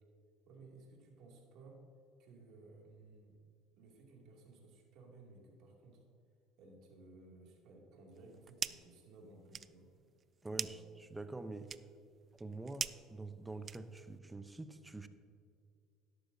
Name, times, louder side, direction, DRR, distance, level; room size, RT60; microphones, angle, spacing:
voice 1, 0.4-1.8 2.2-3.4 3.8-6.0 6.6-9.9 10.5-10.8, right 3 dB, 65° right, -1 dB, 2.5 m, -58 dB
sound 1, 8.1-9.0 9.3-14.2, right 7 dB, 40° right, 0.3 m, -44 dB
voice 2, 10.4-11.7 12.4-15.1, right 2 dB, 15° right, 10 dB, 0.7 m, -46 dB
12.0 x 11.5 x 2.8 m, 2.2 s
supercardioid pair, 80°, 0 cm